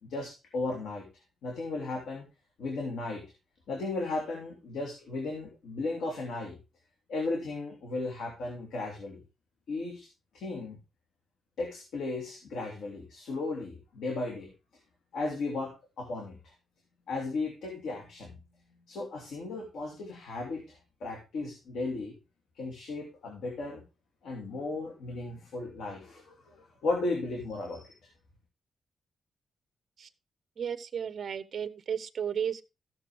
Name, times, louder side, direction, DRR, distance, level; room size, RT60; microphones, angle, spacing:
voice 1, 0.0-1.1 1.4-2.2 2.6-3.2 3.7-6.6 7.1-9.2 9.7-10.1 10.3-10.8 11.6-14.5 15.1-16.5 17.1-18.4 18.9-22.2 22.5-23.8 24.2-28.1, left 3 dB, 90° left, 1 dB, 2.8 m, -35 dB
voice 2, 30.6-32.6, right 8 dB, 50° right, 12 dB, 0.9 m, -34 dB
14.5 x 6.9 x 3.5 m, 0.28 s
wide cardioid pair, 135°, 0 cm